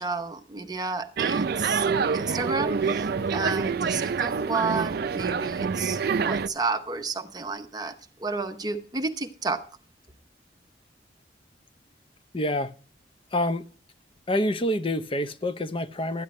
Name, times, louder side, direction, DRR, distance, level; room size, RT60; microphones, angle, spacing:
voice 1, 0.0-1.9 2.1-9.6, right 4 dB, 25° right, 0.8 m, -31 dB
sound 1, 1.2-6.5, right 5 dB, 60° right, 0.4 m, -26 dB
voice 2, 12.3-12.7 13.3-13.6 14.3-16.2, left 1 dB, 30° left, 0.6 m, -27 dB
13.0 x 10.0 x 3.2 m
head